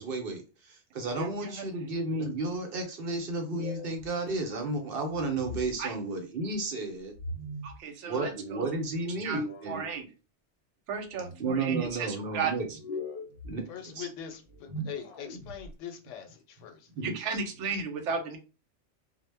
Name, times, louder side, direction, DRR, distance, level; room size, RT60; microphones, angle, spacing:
voice 1, 0.0-7.1 8.1-9.9 11.4-12.7 13.4-13.6 13.9-14.1 16.9-17.1, right 3 dB, 60° right, 0.7 m, -32 dB
voice 2, 1.2-1.6 5.8-5.9 7.6-8.6 9.2-10.1 10.9-12.8 17.0-18.4, right 5 dB, 85° right, 0.9 m, -35 dB
sound 1, 3.4-4.1 5.1-5.7 7.1-7.8 9.1-9.9 11.1-11.9 12.7-13.5 14.5-15.7, equal, 60° left, 0.7 m, -39 dB
voice 3, 13.7-16.9, left 8 dB, 90° left, 0.9 m, -42 dB
2.0 x 2.0 x 3.2 m
omnidirectional pair, 1.2 m